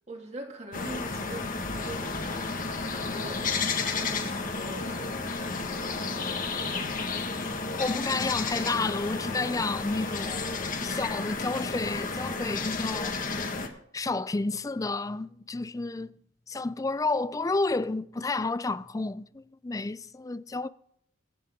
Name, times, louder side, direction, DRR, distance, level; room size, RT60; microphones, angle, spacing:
voice 1, 0.1-2.5 2.9-7.2, right 1 dB, 35° right, 2.7 m, -43 dB
sound 1, 0.7-13.7, left 4 dB, 45° left, 1.6 m, -32 dB
voice 2, 7.8-10.5 10.8-13.2 13.9-16.1 16.5-20.7, left 3 dB, 15° left, 0.4 m, -31 dB
24.0 x 8.7 x 3.7 m
head